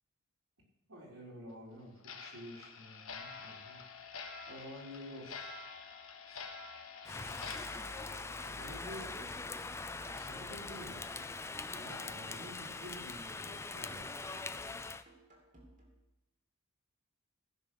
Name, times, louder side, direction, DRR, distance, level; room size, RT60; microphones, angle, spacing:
voice 1, 0.9-5.7 6.3-6.5 8.4-9.3 10.0-11.3 11.7-14.5, equal, 85° right, -4 dB, 3.9 m, -50 dB
Clock, 2.0-9.2 9.5-9.7 10.2-10.3 10.7-10.8 11.3-11.4 11.9-12.0 12.5-12.7, left 5 dB, 75° left, 1.3 m, -48 dB
Rain, 7.1-15.0, left 3 dB, 10° left, 0.3 m, -42 dB
sound 1, 8.0-16.0, right 2 dB, 35° right, 2.7 m, -62 dB
15.5 x 6.7 x 5.9 m, 0.99 s
head